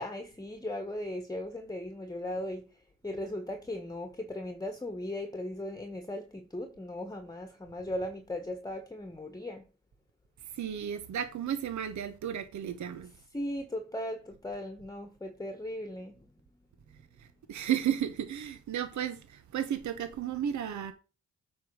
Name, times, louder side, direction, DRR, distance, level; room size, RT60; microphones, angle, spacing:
voice 1, 0.0-2.7 3.0-9.7 13.3-16.2, left 1 dB, 10° left, 1.3 m, -37 dB
voice 2, 10.5-13.1 17.2-20.9, right 9 dB, 65° right, 1.0 m, -33 dB
8.3 x 3.6 x 6.4 m
supercardioid pair, 50°, 31 cm